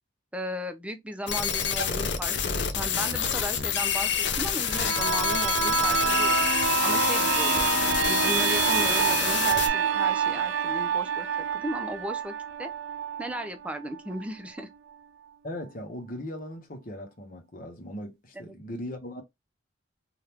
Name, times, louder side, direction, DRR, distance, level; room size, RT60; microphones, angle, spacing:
voice 1, 0.3-6.5 6.8-7.7 8.0-11.3 11.5-12.3 12.6-12.7 13.2-14.7 18.4-18.6, equal, 5° right, 0.5 m, -36 dB
sound 1, 1.3-9.7, left 7 dB, 60° left, 0.5 m, -27 dB
sound 2, 4.6-14.2 14.6-14.7, right 6 dB, 80° right, 0.4 m, -27 dB
voice 2, 15.4-19.2, left 1 dB, 45° left, 0.9 m, -38 dB
3.4 x 2.4 x 2.9 m
head